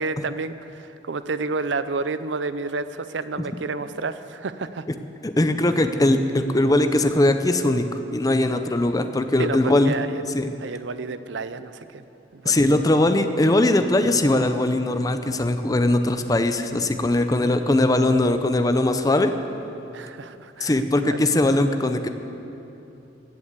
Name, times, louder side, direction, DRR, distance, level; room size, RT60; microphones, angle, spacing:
voice 1, 0.0-4.8 9.4-10.2 10.6-12.0 12.3-12.8 19.9-21.3, right 3 dB, 85° right, 13 dB, 0.6 m, -30 dB
voice 2, 5.2-7.9 8.1-10.0 10.3-10.5 12.4-19.3 20.6-22.1, left 1 dB, 20° left, 8 dB, 0.6 m, -20 dB
15.0 x 8.6 x 8.2 m, 2.9 s
head